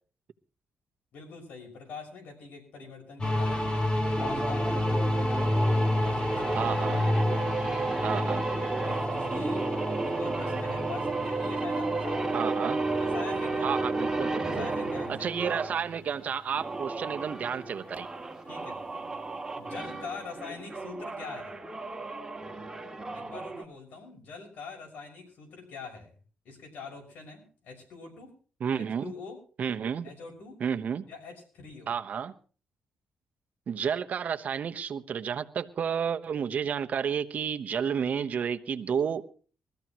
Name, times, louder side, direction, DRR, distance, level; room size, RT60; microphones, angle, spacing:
voice 1, 1.1-3.7 4.1-5.4 6.0-6.6 8.1-8.4 8.8-9.7 10.0-12.5 12.9-13.8 14.4-15.3 18.4-18.8 19.6-21.5 23.1-26.1 26.4-28.4 28.7-29.4 30.0-30.6 31.1-31.9, left 5 dB, 75° left, 2 dB, 6.1 m, -44 dB
sound 1, 3.2-15.7, left 1 dB, 30° left, 2.4 m, -30 dB
sound 2, 4.2-15.8 16.5-23.6, right 3 dB, 15° right, 2.3 m, -33 dB
voice 2, 6.5-7.1 8.0-8.5 12.3-12.8 13.6-14.7 15.1-18.1 28.6-29.1 29.6-30.1 30.6-31.0 31.9-32.3 33.7-39.2, right 7 dB, 55° right, 9 dB, 1.0 m, -31 dB
22.0 x 14.0 x 3.1 m, 0.39 s
cardioid pair, 95°, 3 cm